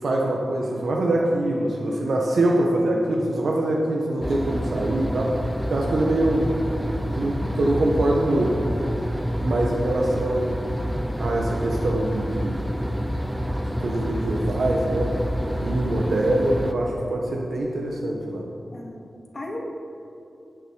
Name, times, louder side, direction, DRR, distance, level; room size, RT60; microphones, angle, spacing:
voice 1, 0.0-5.3 5.7-6.5 7.2-8.6 9.4-10.6 11.2-12.6 13.5-15.2 15.6-18.4, right 1 dB, 80° right, -1 dB, 1.4 m, -24 dB
sound 1, 4.2-16.7, equal, 5° right, 0.7 m, -28 dB
voice 2, 7.2-7.7 8.6-9.0 9.9-10.0 18.7-19.7, left 1 dB, 40° left, -1 dB, 2.2 m, -38 dB
17.0 x 9.2 x 4.8 m, 2.7 s
wide cardioid pair, 145°, 0 cm